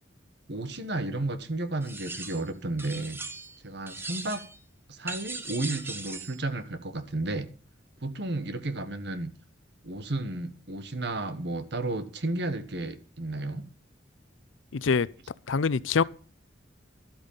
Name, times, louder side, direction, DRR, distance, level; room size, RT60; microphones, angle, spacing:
voice 1, 0.5-3.2 3.6-4.4 4.9-7.5 8.0-9.3 9.8-13.7, right 2 dB, 60° right, 1.4 m, -32 dB
sound 1, 1.8-2.5 2.8-3.6 3.9-4.6 5.1-6.4, right 3 dB, 10° right, 1.1 m, -39 dB
voice 2, 14.7-15.1 15.5-16.0, left 5 dB, 85° left, 0.6 m, -24 dB
12.0 x 8.6 x 5.7 m
head